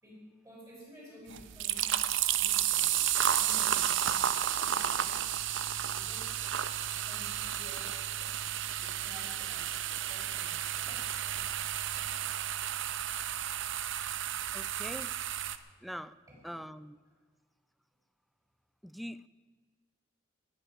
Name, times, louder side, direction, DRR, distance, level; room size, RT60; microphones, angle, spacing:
voice 1, 0.0-3.0 3.4-5.3 5.9-6.6 6.9-8.0 8.7-11.2 16.3-16.6, equal, 15° right, -3 dB, 5.5 m, -53 dB
sound 1, 1.3-15.6, right 11 dB, 65° right, 0.6 m, -32 dB
voice 2, 14.5-15.2 15.8-16.2 16.4-17.0 18.8-19.3, equal, ahead, 14 dB, 0.3 m, -43 dB
20.0 x 8.9 x 5.9 m, 1.4 s
head